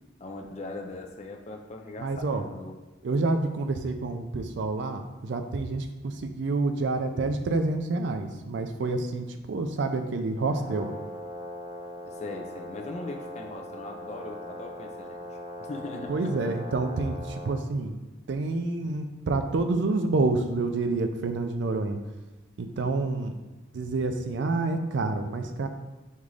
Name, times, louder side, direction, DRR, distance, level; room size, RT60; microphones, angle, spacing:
voice 1, 0.2-2.8 12.1-16.4 18.8-18.9, left 2 dB, 35° left, 3 dB, 0.4 m, -40 dB
voice 2, 2.0-2.4 3.0-10.9 16.1-17.9 18.3-22.0 22.6-23.4 23.7-25.7, right 3 dB, 65° right, 7 dB, 0.4 m, -28 dB
Brass instrument, 10.5-17.6, left 1 dB, 30° right, 1.5 m, -40 dB
5.3 x 2.4 x 3.2 m, 1.1 s
head